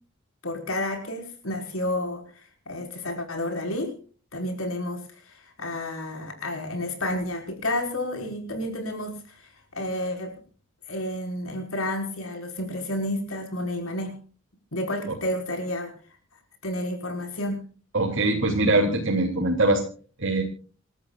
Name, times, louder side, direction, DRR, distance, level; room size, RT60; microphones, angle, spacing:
voice 1, 0.4-3.9 4.3-9.4 9.7-10.3 10.9-14.2 14.7-15.9 16.6-17.6, left 1 dB, 85° left, 3 dB, 5.6 m, -30 dB
voice 2, 17.9-19.8 20.2-20.4, right 2 dB, 65° right, -1 dB, 3.2 m, -22 dB
28.5 x 13.5 x 2.5 m, 0.40 s
head